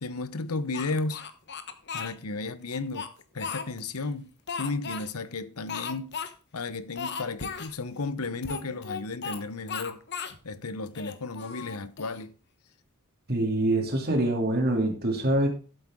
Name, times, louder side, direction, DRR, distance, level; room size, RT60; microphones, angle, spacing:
voice 1, 0.0-1.2 1.9-3.1 3.3-4.3 4.6-6.1 6.5-10.0 10.4-12.3, left 3 dB, 85° left, 0.9 m, -33 dB
Speech, 0.7-2.1 2.7-4.0 4.5-5.1 5.7-6.3 6.6-6.7 7.0-7.7 8.4-9.4 9.7-10.4 10.9-12.2, left 5 dB, 50° left, 1.1 m, -36 dB
voice 2, 13.3-15.5, right 1 dB, 45° right, 2.8 m, -25 dB
13.0 x 7.8 x 3.7 m
head